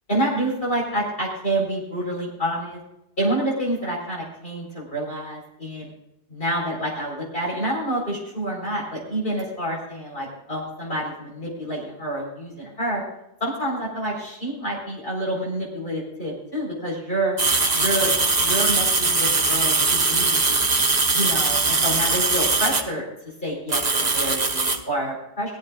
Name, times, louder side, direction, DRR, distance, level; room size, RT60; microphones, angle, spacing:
voice 1, 0.1-2.8 3.2-5.9 6.3-13.0 13.4-17.4 17.7-20.7 21.1-21.6 21.8-25.6, right 1 dB, 60° left, -3 dB, 4.7 m, -28 dB
sound 1, 17.4-22.8 23.7-24.8, right 3 dB, 40° right, 1.3 m, -21 dB
19.0 x 15.0 x 2.5 m, 0.85 s
omnidirectional pair, 1.1 m